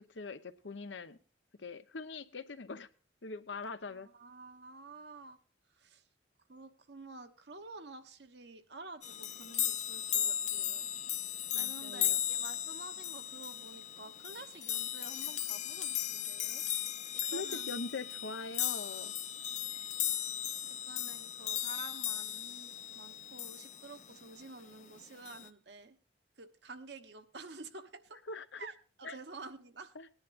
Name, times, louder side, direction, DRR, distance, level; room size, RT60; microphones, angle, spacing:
voice 1, 0.1-1.2 1.6-2.9 3.2-4.1 11.5-12.2 17.3-19.1 28.3-28.7 29.0-29.2 29.9-30.1, left 3 dB, 85° left, 10 dB, 0.9 m, -42 dB
voice 2, 3.9-5.4 5.8-6.0 6.5-10.9 11.5-16.6 17.1-17.8 19.7-19.9 20.7-26.0 26.4-28.2 28.6-29.9, right 3 dB, 70° right, 8 dB, 1.1 m, -50 dB
sound 1, 9.0-24.0 25.3-25.5, left 11 dB, 40° left, 0.6 m, -36 dB
20.0 x 10.5 x 2.5 m, 0.38 s
head